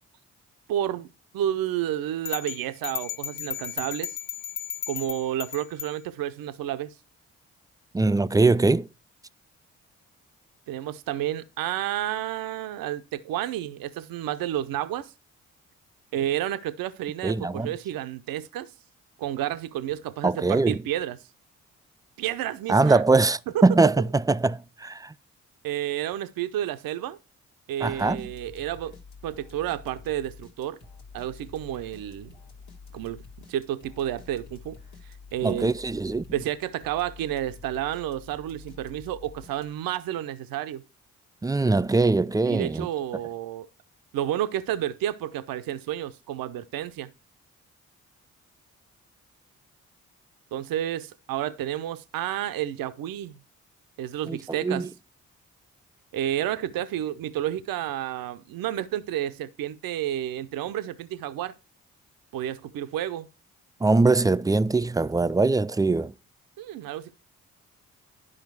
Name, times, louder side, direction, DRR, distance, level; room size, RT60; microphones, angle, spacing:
voice 1, 0.7-1.1 1.3-4.1 4.9-6.9 10.7-15.1 16.1-18.7 19.2-21.2 22.2-23.0 23.5-23.6 25.6-27.2 27.7-29.0 29.2-30.8 31.1-32.3 32.9-33.2 33.5-34.8 35.3-35.7 36.3-40.8 42.5-43.7 44.1-47.1 50.5-53.4 54.0-54.9 56.1-61.5 62.3-63.3 66.6-67.1, right 12 dB, 75° right, 0.7 m, -30 dB
sound 1, 2.3-6.0, left 8 dB, 60° left, 1.1 m, -34 dB
voice 2, 7.9-8.9 17.2-17.7 20.2-20.8 22.7-25.1 27.8-28.2 35.4-36.2 41.4-42.9 54.3-54.9 63.8-66.1, right 3 dB, 10° right, 0.3 m, -22 dB
sound 2, 27.8-40.0, left 5 dB, 85° left, 1.7 m, -48 dB
11.0 x 5.0 x 4.6 m
hypercardioid pair, 45°, 35 cm